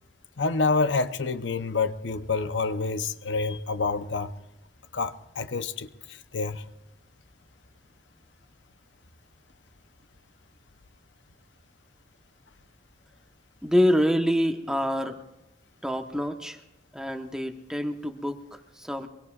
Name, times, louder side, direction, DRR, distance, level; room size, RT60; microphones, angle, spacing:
voice 1, 0.4-4.3 4.9-5.9 6.3-6.6, left 4 dB, 90° left, 11 dB, 0.8 m, -27 dB
voice 2, 13.6-15.2 15.8-16.6 16.9-19.1, equal, 5° right, 5 dB, 1.0 m, -26 dB
24.0 x 23.0 x 2.4 m, 0.92 s
head